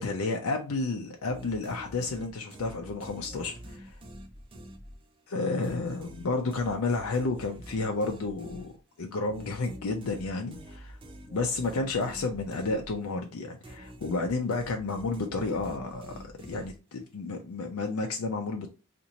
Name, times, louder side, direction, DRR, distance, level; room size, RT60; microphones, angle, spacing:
voice 1, 0.0-3.9 5.3-8.7 9.0-11.0 11.3-18.7, left 3 dB, 85° left, 0.5 m, -31 dB
sound 1, 1.3-5.3 5.6-13.3 13.6-17.1, right 1 dB, 25° right, 0.4 m, -47 dB
2.9 x 2.5 x 3.9 m
head